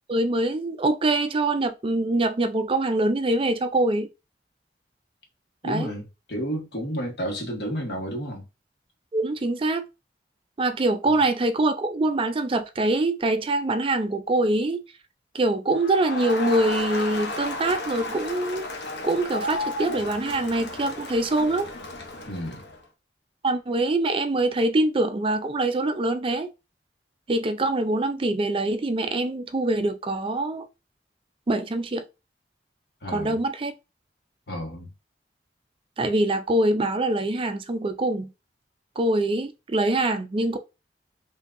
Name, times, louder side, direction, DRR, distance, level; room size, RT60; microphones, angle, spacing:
voice 1, 0.1-4.1 5.6-5.9 9.1-9.8 10.6-14.8 15.3-21.7 23.4-26.5 27.3-30.7 31.5-32.0 33.1-33.7 36.0-38.3 39.0-40.6, right 2 dB, 30° right, 0.4 m, -24 dB
voice 2, 5.6-8.4 11.1-11.2 22.2-22.7 33.0-33.3 34.5-34.9, equal, 65° left, 1.3 m, -31 dB
Crowd, 15.7-22.8, left 2 dB, 85° left, 0.9 m, -33 dB
5.6 x 2.6 x 2.5 m
head